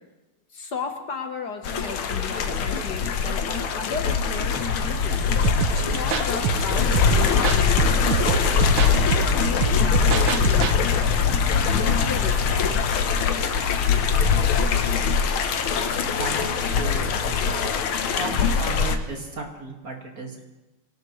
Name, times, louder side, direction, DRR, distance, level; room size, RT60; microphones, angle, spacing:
voice 1, 0.5-12.6, left 4 dB, 55° left, 5 dB, 1.6 m, -34 dB
sound 1, 1.6-19.0, left 6 dB, 75° left, 1.8 m, -22 dB
sound 2, 3.6-16.2, left 2 dB, 10° left, 1.2 m, -43 dB
sound 3, 5.4-10.8, right 9 dB, 80° right, 1.6 m, -26 dB
voice 2, 16.2-17.4 18.1-20.4, right 3 dB, 45° right, 1 dB, 2.3 m, -35 dB
24.0 x 18.5 x 3.1 m, 1.1 s
omnidirectional pair, 2.3 m